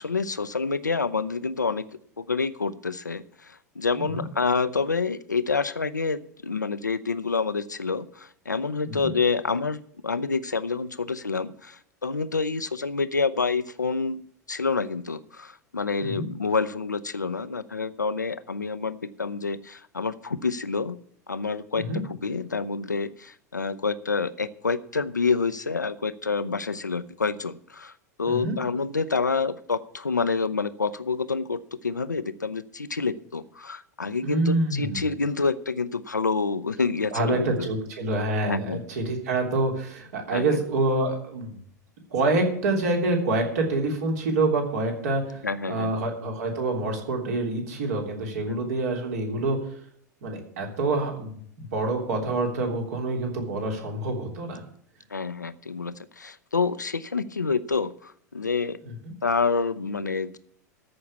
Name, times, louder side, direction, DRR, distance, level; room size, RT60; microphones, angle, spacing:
voice 1, 0.0-1.9 2.2-14.2 14.5-21.0 21.3-27.9 28.2-37.7 38.4-38.8 40.3-40.6 45.4-45.9 48.5-48.7 55.1-58.8 59.2-60.4, left 4 dB, 85° left, 14 dB, 0.6 m, -28 dB
voice 2, 28.3-28.6 34.2-35.0 37.1-41.5 42.1-45.4 45.7-49.6 50.2-54.6 58.8-58.9, right 2 dB, 60° right, 2 dB, 3.2 m, -26 dB
14.0 x 5.7 x 8.3 m, 0.63 s
figure-of-eight pair, 85°, 9 cm